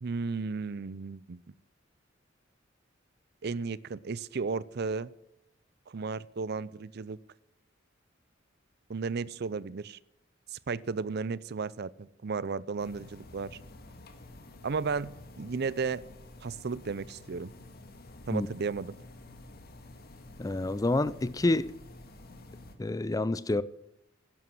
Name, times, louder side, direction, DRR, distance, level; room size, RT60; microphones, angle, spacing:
voice 1, 0.0-1.5 3.4-5.1 5.9-7.2 8.9-10.0 10.5-13.6 14.6-16.0 16.4-17.5 18.3-18.9, right 4 dB, 55° right, 0.5 m, -34 dB
sound 1, 12.8-22.8, left 2 dB, 50° left, 1.8 m, -50 dB
voice 2, 20.4-21.7 22.8-23.6, left 2 dB, 20° left, 0.4 m, -28 dB
11.5 x 11.0 x 7.6 m
head